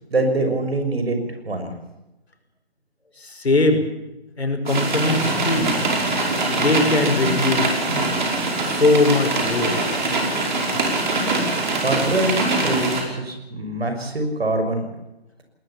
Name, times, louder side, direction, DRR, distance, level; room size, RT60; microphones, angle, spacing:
voice 1, 0.1-1.2 1.5-1.7 11.8-12.3 12.6-14.9, right 2 dB, 65° right, 6 dB, 6.1 m, -24 dB
voice 2, 3.2-3.8 4.4-5.7 6.5-7.8 8.7-9.9, left 2 dB, 75° left, 5 dB, 5.5 m, -20 dB
sound 1, 4.7-13.0, right 2 dB, 45° right, 5.5 m, -23 dB
20.5 x 19.5 x 7.2 m, 0.97 s
figure-of-eight pair, 155°, 32 cm